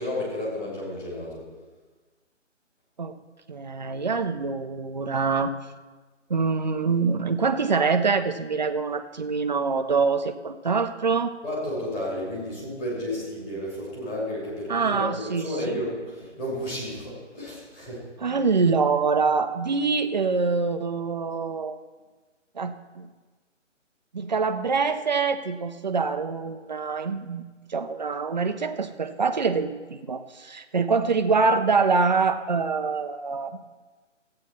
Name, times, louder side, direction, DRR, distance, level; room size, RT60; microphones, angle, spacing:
voice 1, 0.0-1.4 11.4-18.0, left 1 dB, 15° left, -6 dB, 2.8 m, -32 dB
voice 2, 3.5-5.6 6.3-11.3 14.7-15.8 18.2-21.8 22.6-23.1 24.1-27.4 27.7-33.5, right 4 dB, 35° right, 8 dB, 0.5 m, -25 dB
14.0 x 8.6 x 4.3 m, 1.3 s
figure-of-eight pair, 160°, 38 cm